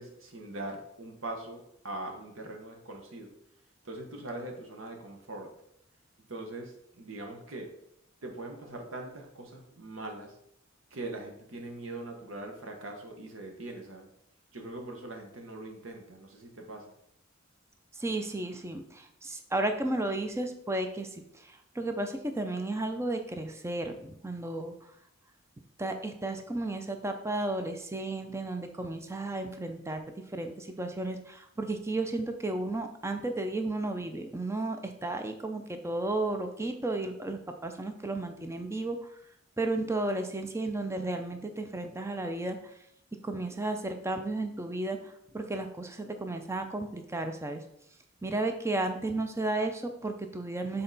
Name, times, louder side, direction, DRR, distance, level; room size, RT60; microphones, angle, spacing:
voice 1, 0.0-3.3 3.8-5.5 6.3-7.7 8.2-10.3 10.9-14.1 14.5-16.9, right 2 dB, 75° right, 3 dB, 1.2 m, -41 dB
voice 2, 18.0-24.9 25.8-30.0 30.3-39.1 39.6-42.7 43.2-47.6 48.2-50.8, right 2 dB, 15° right, 6 dB, 0.5 m, -33 dB
6.4 x 3.9 x 4.0 m, 0.75 s
head